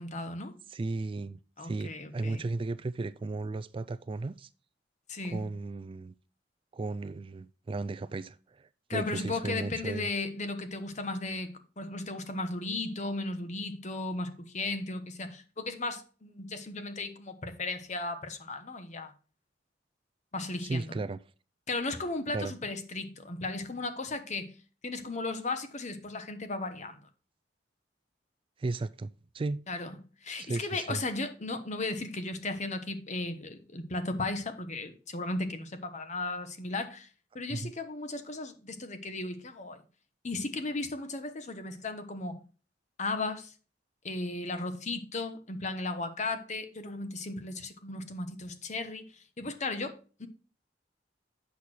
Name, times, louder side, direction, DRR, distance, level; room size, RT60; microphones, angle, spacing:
voice 1, 0.0-0.5 1.6-2.5 5.1-5.4 8.9-19.1 20.3-21.0 21.7-24.5 24.8-27.0 29.7-29.9 30.2-37.1 37.3-39.8 40.2-42.4 43.0-43.5 44.0-50.3, left 2 dB, 40° left, 1.1 m, -35 dB
voice 2, 0.7-4.5 5.2-6.1 6.7-10.1 20.7-21.2 22.3-22.5 28.6-29.6 30.4-31.0 37.5-37.7, right 3 dB, 30° right, 0.3 m, -35 dB
8.4 x 6.3 x 4.3 m
head